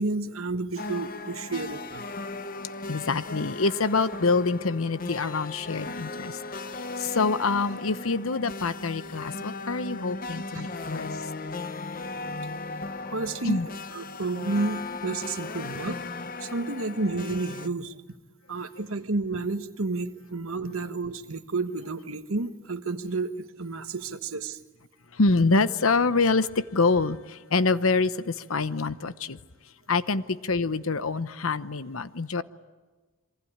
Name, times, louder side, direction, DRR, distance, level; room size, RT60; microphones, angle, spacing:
voice 1, 0.0-2.1 10.5-10.7 13.0-16.0 16.4-18.0 18.5-24.6, right 3 dB, 80° right, 8 dB, 1.3 m, -31 dB
sound 1, 0.8-17.7, left 3 dB, 40° left, 0.8 m, -37 dB
voice 2, 2.9-6.4 7.0-11.1 13.4-13.7 25.1-29.4 29.9-32.4, left 3 dB, 80° left, 13 dB, 1.0 m, -26 dB
27.5 x 24.0 x 8.9 m, 1.3 s
head